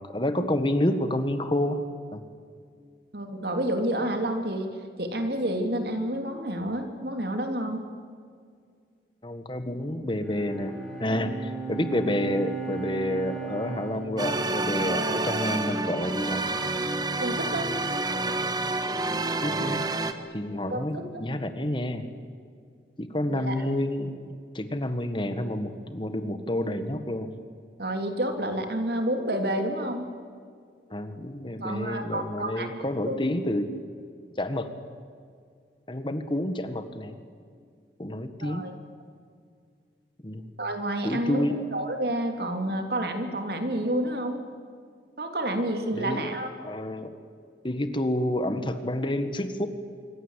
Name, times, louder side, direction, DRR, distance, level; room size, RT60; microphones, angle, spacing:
voice 1, 0.1-1.8 2.1-2.2 9.2-16.5 19.4-19.8 20.3-22.0 23.0-24.1 24.5-27.3 30.9-33.7 34.4-34.7 35.9-37.2 38.0-38.6 40.2-40.5 41.0-41.6 45.9-46.3 46.6-47.1 47.6-49.7, left 1 dB, 30° left, 9 dB, 1.6 m, -29 dB
voice 2, 3.1-7.8 17.2-17.7 20.7-20.9 21.1-21.2 23.3-23.6 27.8-30.1 31.6-32.8 33.0-33.2 38.4-38.7 40.6-41.4 41.7-44.4 45.2-46.5, right 1 dB, 60° right, 5 dB, 3.0 m, -29 dB
Bowed string instrument, 10.2-15.7, right 4 dB, 5° left, 5.3 m, -38 dB
sound 1, 14.2-20.1, right 2 dB, 25° right, 1.4 m, -28 dB
26.5 x 24.0 x 8.2 m, 2.2 s
head